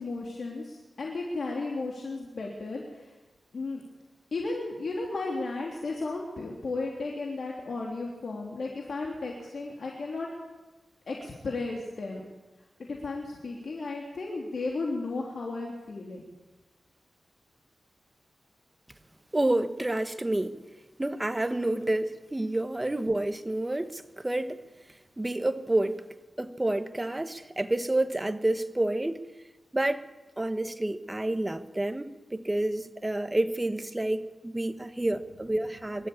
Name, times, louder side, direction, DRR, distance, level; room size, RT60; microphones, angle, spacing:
voice 1, 0.0-3.1 3.5-3.8 4.3-10.3 11.1-12.2 12.8-16.2, left 3 dB, 65° left, -1 dB, 3.2 m, -34 dB
voice 2, 19.3-20.6 21.0-24.6 25.2-26.0 26.4-29.2 29.7-30.0 30.4-36.1, right 1 dB, 15° right, 9 dB, 1.2 m, -29 dB
24.5 x 13.0 x 8.7 m, 1.2 s
wide cardioid pair, 100°, 0 cm